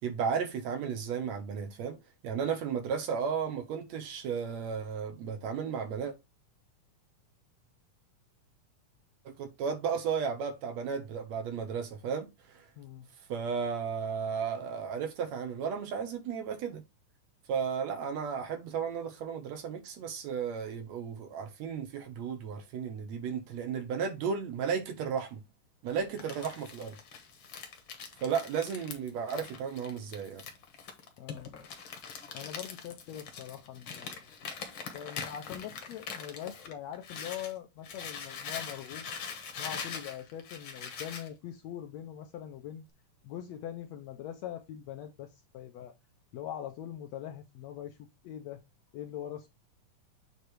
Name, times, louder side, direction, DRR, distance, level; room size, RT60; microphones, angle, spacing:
voice 1, 0.0-2.0 2.2-6.1 9.3-12.7 13.3-16.8 17.5-25.4 25.8-27.0 28.2-30.4, right 6 dB, 65° right, 2.0 m, -34 dB
voice 2, 12.8-13.1 31.2-31.5 32.3-34.1 34.9-39.1 39.6-42.8 43.2-45.9 46.3-48.6 48.9-49.5, left 10 dB, 75° left, 1.6 m, -42 dB
Crumpling crinkling, 25.9-37.5 37.8-41.3, left 6 dB, 55° left, 1.6 m, -43 dB
8.2 x 3.2 x 4.5 m
omnidirectional pair, 3.6 m